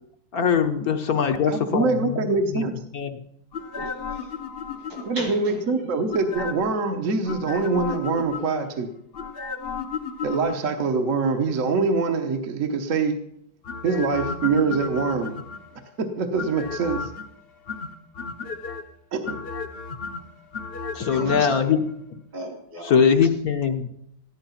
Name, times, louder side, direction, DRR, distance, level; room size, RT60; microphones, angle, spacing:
voice 1, 0.3-2.7 2.9-3.1 20.9-21.8 22.8-23.9, left 7 dB, 60° left, 6 dB, 1.3 m, -22 dB
voice 2, 1.4-2.7 5.1-8.9 10.2-13.1 13.8-15.3 16.0-17.1 19.1-19.4, right 4 dB, 50° right, 5 dB, 1.3 m, -24 dB
sound 1, 3.5-5.4 6.1-6.8 7.3-8.7 9.1-10.8 13.6-15.8 16.4-17.3 17.7-18.8 19.2-21.6 21.9-22.0, left 5 dB, 40° left, 0.9 m, -33 dB
voice 3, 3.7-4.3 4.7-6.0 21.0-21.5 22.3-23.3, right 1 dB, 75° right, 0 dB, 5.4 m, -36 dB
15.0 x 12.0 x 5.8 m, 0.74 s
omnidirectional pair, 2.0 m